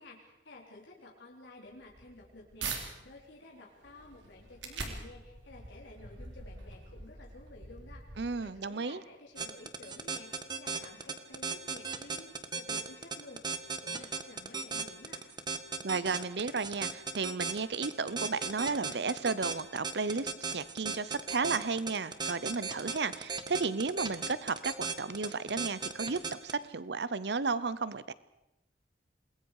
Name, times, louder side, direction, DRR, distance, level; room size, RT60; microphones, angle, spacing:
voice 1, 0.0-15.2, left 2 dB, 70° left, -2 dB, 3.3 m, -53 dB
sound 1, 1.7-2.8 3.4-8.6, right 4 dB, 90° right, 3.8 m, -44 dB
voice 2, 8.2-9.0 15.8-28.1, right 4 dB, 65° right, 16 dB, 0.8 m, -33 dB
sound 2, 9.4-26.5, right 5 dB, 25° right, 1.3 m, -36 dB
28.0 x 21.0 x 4.9 m, 0.92 s
head